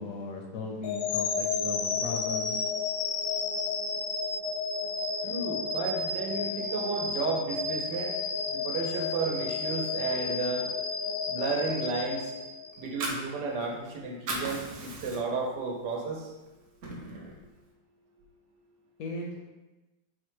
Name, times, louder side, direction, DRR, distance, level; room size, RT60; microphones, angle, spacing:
voice 1, 0.0-2.6 19.0-19.5, left 3 dB, 70° left, 0 dB, 0.9 m, -37 dB
sound 1, 0.8-13.0, left 4 dB, 85° left, 1.3 m, -32 dB
voice 2, 5.2-8.1 8.5-10.6 11.3-12.3 12.8-16.2, right 4 dB, 80° right, 0 dB, 1.3 m, -32 dB
Fire, 12.7-13.9 14.1-15.5 15.9-16.1 16.4-17.4, right 2 dB, 60° right, 0.9 m, -36 dB
4.3 x 2.2 x 4.6 m, 1.1 s
omnidirectional pair, 1.9 m